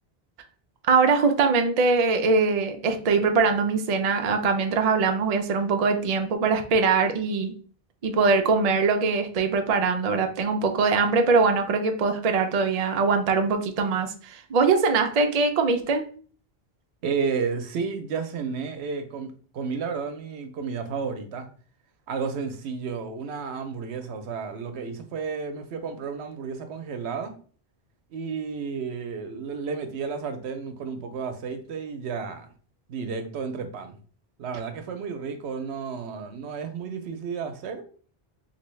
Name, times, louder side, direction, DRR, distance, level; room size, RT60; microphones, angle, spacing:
voice 1, 0.9-7.6 8.0-16.1, right 4 dB, 50° right, 5 dB, 0.5 m, -22 dB
voice 2, 17.0-21.5 22.1-27.4 28.1-32.5 32.9-34.0 34.4-37.8, right 5 dB, 90° right, 8 dB, 0.9 m, -32 dB
3.4 x 2.7 x 3.1 m, 0.42 s
omnidirectional pair, 1.1 m